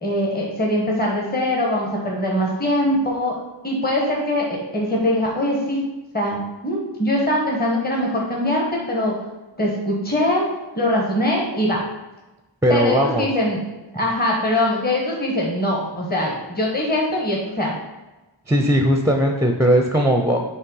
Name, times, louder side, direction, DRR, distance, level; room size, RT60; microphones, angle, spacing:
voice 1, 0.0-3.4 3.6-5.8 6.1-9.1 9.6-10.4 10.7-11.8 12.7-13.6 13.9-17.7, left 1 dB, 20° left, -2 dB, 1.2 m, -22 dB
voice 2, 12.6-13.3 18.5-20.4, equal, 5° right, 3 dB, 0.5 m, -18 dB
5.4 x 3.3 x 5.4 m, 1.1 s
wide cardioid pair, 55°, 45 cm